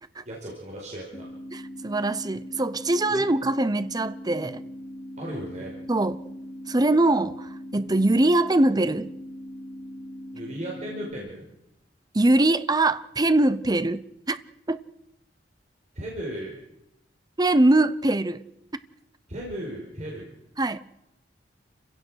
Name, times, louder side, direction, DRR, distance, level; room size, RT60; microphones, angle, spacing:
voice 1, 0.2-1.2 3.1-3.2 5.2-5.7 10.3-11.4 15.9-16.5 19.3-20.3, equal, 40° right, 5.1 m, -35 dB
sound 1, 1.1-11.1, equal, 25° left, 3.6 m, -40 dB
voice 2, 1.5-4.6 5.9-6.3 6.7-9.1 12.1-14.4 14.7-14.8 17.4-18.4 20.6-20.8, right 2 dB, 20° right, 0.8 m, -22 dB
29.0 x 16.5 x 6.4 m
head